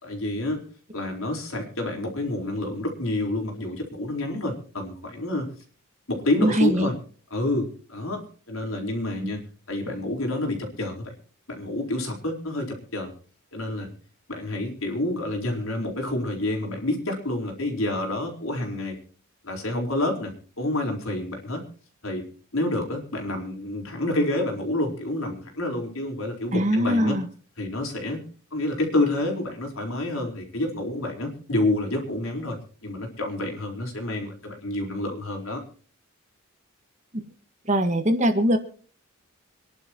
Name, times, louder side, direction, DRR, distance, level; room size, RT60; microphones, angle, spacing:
voice 1, 0.0-0.6 0.9-5.5 6.1-7.0 7.3-9.4 9.7-11.1 11.5-13.1 13.5-13.9 14.3-19.0 19.4-21.6 22.0-22.2 22.5-27.2 27.6-28.2 28.5-35.6, left 1 dB, 75° left, 1 dB, 4.4 m, -28 dB
voice 2, 6.4-6.9 9.2-9.4 26.5-27.3 37.1-37.2 37.7-38.6, equal, 35° right, 7 dB, 1.8 m, -22 dB
26.5 x 11.5 x 3.1 m, 0.41 s
head